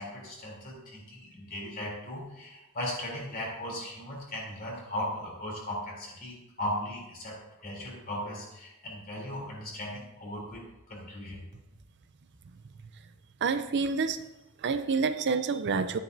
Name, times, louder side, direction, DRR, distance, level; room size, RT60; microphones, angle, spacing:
voice 1, 0.0-10.6 10.9-11.4, left 1 dB, 45° left, -3 dB, 3.3 m, -37 dB
voice 2, 13.4-14.2 14.6-16.0, right 5 dB, 55° right, 10 dB, 0.5 m, -28 dB
12.0 x 9.7 x 2.7 m, 0.96 s
head